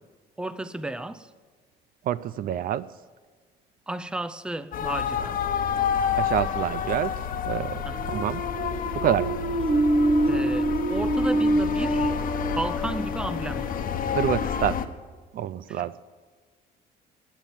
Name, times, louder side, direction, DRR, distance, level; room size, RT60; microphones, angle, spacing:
voice 1, 0.4-1.3 3.9-5.4 7.9-8.2 10.2-12.2 12.5-13.8 15.7-16.0, right 1 dB, 5° right, 0.6 m, -33 dB
voice 2, 2.1-2.8 6.2-7.1 7.4-7.8 8.1-8.4 8.9-9.3 14.1-14.8 15.3-15.9, right 10 dB, 60° right, 0.5 m, -27 dB
sound 1, 4.7-14.9, left 8 dB, 55° left, 1.2 m, -29 dB
sound 2, 7.9-13.6, right 1 dB, 35° right, 1.3 m, -25 dB
19.0 x 9.5 x 7.1 m
cardioid pair, 110°, 17 cm